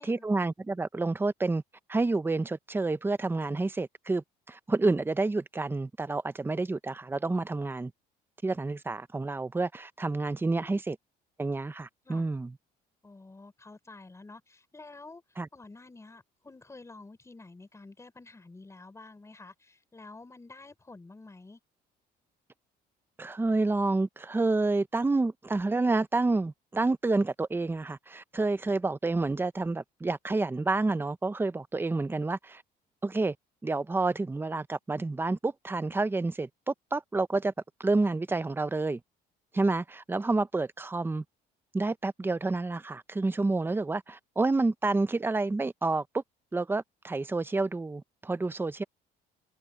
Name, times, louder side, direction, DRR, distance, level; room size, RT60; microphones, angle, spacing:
voice 1, 0.0-1.6 1.9-7.9 8.4-11.0 11.4-12.5 15.4-15.5 23.2-32.6 33.0-33.3 33.6-37.5 37.8-39.0 39.5-41.2 41.7-46.2 46.5-48.8, right 3 dB, 15° right, 0.8 m, -29 dB
voice 2, 10.5-10.8 12.0-12.3 13.0-15.2 15.5-21.6, left 3 dB, 15° left, 5.4 m, -50 dB
cardioid pair, 110°, 17 cm